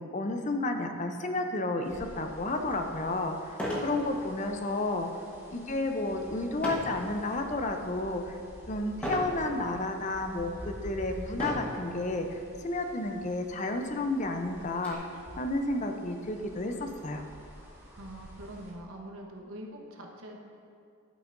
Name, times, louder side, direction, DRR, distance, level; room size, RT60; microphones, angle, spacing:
voice 1, 0.0-5.1 5.5-8.4 8.7-15.0 15.4-17.2, left 2 dB, 35° left, 5 dB, 0.5 m, -31 dB
sound 1, 1.8-18.7, equal, 10° right, 1.6 m, -49 dB
sound 2, 2.6-2.7 3.5-4.0 4.4-4.7 6.6-7.0 7.6-8.0 9.0-9.4 10.1-10.2 11.3-11.8 12.8-13.0 13.3-13.4 13.8-14.9, equal, 5° left, 1.1 m, -34 dB
voice 2, 18.0-20.4, right 1 dB, 75° right, 0 dB, 1.0 m, -44 dB
11.0 x 8.6 x 2.6 m, 2.4 s
head